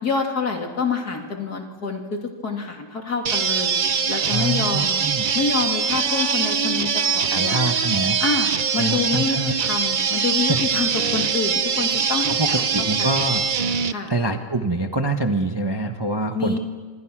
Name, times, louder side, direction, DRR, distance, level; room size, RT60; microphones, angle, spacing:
voice 1, 0.0-3.7 4.1-5.0 5.3-7.6 8.2-13.1 13.9-14.1 16.3-16.6, left 4 dB, 55° left, 3 dB, 3.5 m, -27 dB
sound 1, 3.2-13.9, right 6 dB, 85° right, 0.4 m, -23 dB
voice 2, 4.3-5.3 7.3-8.2 8.8-9.6 10.5-10.6 12.3-13.4 14.1-16.6, right 2 dB, 15° right, 5 dB, 1.1 m, -25 dB
26.5 x 26.5 x 6.2 m, 1.5 s
omnidirectional pair, 2.1 m